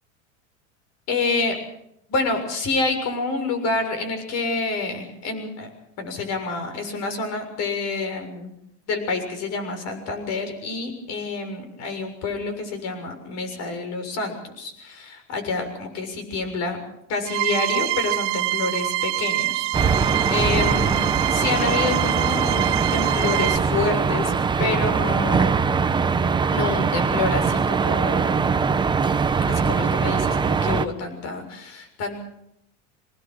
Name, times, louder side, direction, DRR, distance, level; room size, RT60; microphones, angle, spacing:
voice 1, 1.1-1.6 2.1-5.7 6.0-8.5 8.9-16.8 17.1-25.8 26.5-28.5 29.5-32.2, left 3 dB, 45° left, 7 dB, 6.9 m, -28 dB
sound 1, 17.3-23.6, right 20 dB, 50° right, 1.0 m, -25 dB
sound 2, 19.7-30.9, right 5 dB, 10° right, 0.9 m, -22 dB
24.0 x 20.0 x 6.5 m, 0.77 s
supercardioid pair, 135°, 36 cm